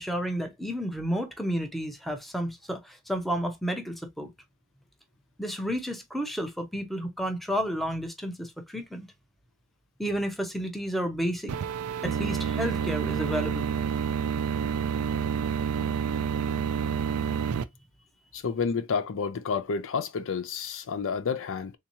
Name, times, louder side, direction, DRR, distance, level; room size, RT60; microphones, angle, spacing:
voice 1, 0.0-4.3 5.4-9.1 10.0-11.5 12.0-13.7, equal, ahead, 0.7 m, -31 dB
sound 1, 11.5-17.6, right 7 dB, 90° right, 0.4 m, -28 dB
voice 2, 18.3-21.7, left 5 dB, 65° left, 0.5 m, -30 dB
3.5 x 2.8 x 2.8 m
head